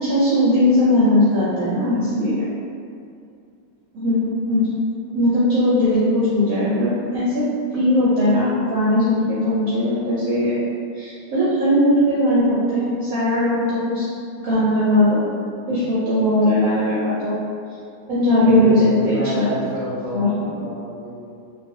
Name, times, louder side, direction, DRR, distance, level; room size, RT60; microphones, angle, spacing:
voice 1, 0.0-2.5 3.9-4.7 5.1-7.4 7.7-10.5 10.9-14.0 14.4-15.2 15.7-17.3 18.1-19.5 20.1-20.3, left 1 dB, 70° right, -10 dB, 0.9 m, -19 dB
voice 2, 18.4-21.3, equal, 65° left, -14 dB, 0.4 m, -29 dB
2.6 x 2.4 x 2.6 m, 2.4 s
omnidirectional pair, 1.8 m